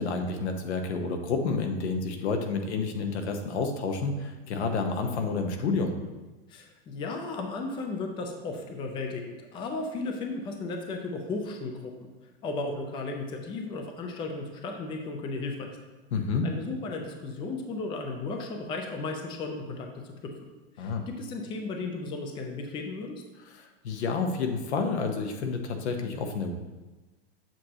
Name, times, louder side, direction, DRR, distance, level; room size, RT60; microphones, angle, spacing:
voice 1, 0.0-6.0 16.1-16.5 20.8-21.0 23.5-26.5, left 4 dB, 85° left, 5 dB, 1.1 m, -29 dB
voice 2, 6.5-12.1 12.4-15.9 16.4-20.3 20.8-23.2, left 3 dB, 15° left, 4 dB, 0.5 m, -35 dB
7.4 x 6.3 x 2.9 m, 1.2 s
supercardioid pair, 150°, 33 cm